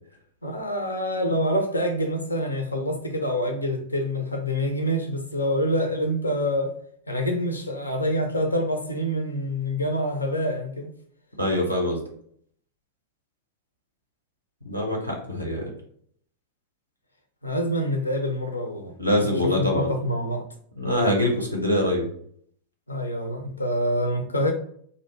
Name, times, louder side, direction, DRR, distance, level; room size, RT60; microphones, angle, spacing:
voice 1, 0.4-6.7 7.1-10.9 17.4-18.9 19.2-20.4 22.9-24.5, equal, 80° left, 0.4 m, -26 dB
voice 2, 11.4-12.0 14.6-15.6 19.0-19.9 20.8-22.1, left 1 dB, 90° right, 0.6 m, -24 dB
2.4 x 2.1 x 2.8 m
figure-of-eight pair, 90°, 0 cm